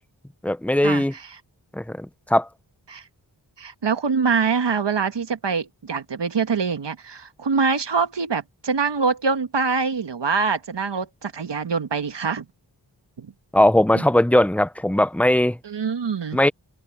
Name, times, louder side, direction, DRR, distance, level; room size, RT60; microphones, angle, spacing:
voice 1, 0.4-1.1 1.7-2.5 13.5-15.6 16.3-16.5, left 1 dB, 5° left, 0.6 m, -19 dB
voice 2, 3.6-12.4 13.2-13.3 13.9-14.0 15.6-16.4, right 5 dB, 80° right, 1.5 m, -24 dB
wide cardioid pair, 60°, 42 cm